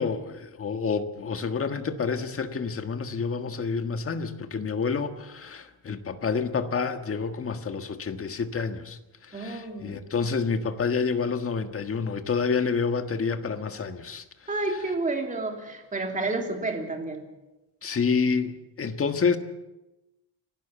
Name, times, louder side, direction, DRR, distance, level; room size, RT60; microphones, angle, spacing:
voice 1, 0.0-14.2 17.8-19.4, left 5 dB, 30° left, 1.5 m, -28 dB
voice 2, 9.3-9.9 14.5-17.2, right 2 dB, 20° right, 3.1 m, -30 dB
29.5 x 12.0 x 7.2 m
cardioid pair, 155°, 43 cm